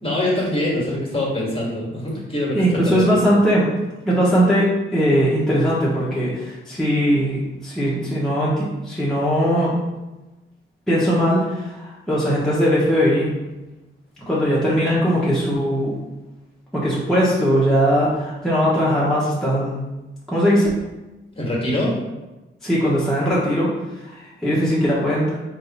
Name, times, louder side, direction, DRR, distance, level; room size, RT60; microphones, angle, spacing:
voice 1, 0.0-3.0 21.3-22.0, left 1 dB, 25° left, -4 dB, 1.5 m, -24 dB
voice 2, 2.5-3.7 4.1-9.7 10.9-13.3 14.3-16.0 16.7-19.7 20.3-20.7 22.6-25.3, equal, ahead, -9 dB, 1.1 m, -19 dB
3.6 x 2.7 x 4.1 m, 1.1 s
cardioid pair, 75°, 21 cm